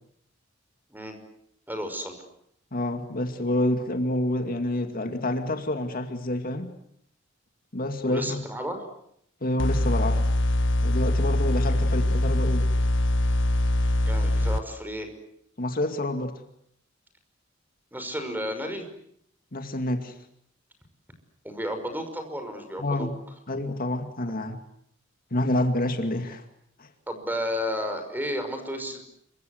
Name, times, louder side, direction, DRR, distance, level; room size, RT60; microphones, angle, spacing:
voice 1, 1.7-2.2 8.0-8.9 14.0-15.1 17.9-18.9 21.4-23.1 27.1-29.0, equal, 10° right, 7 dB, 5.6 m, -32 dB
voice 2, 2.7-6.7 7.7-8.4 9.4-10.2 10.8-12.7 15.6-16.3 19.5-20.1 22.8-23.2 23.5-24.6 25.3-26.4 26.8-26.9, left 1 dB, 45° left, 6 dB, 2.4 m, -28 dB
sound 1, 9.6-14.6, left 1 dB, 65° left, 1.4 m, -23 dB
27.5 x 24.5 x 8.0 m, 0.72 s
head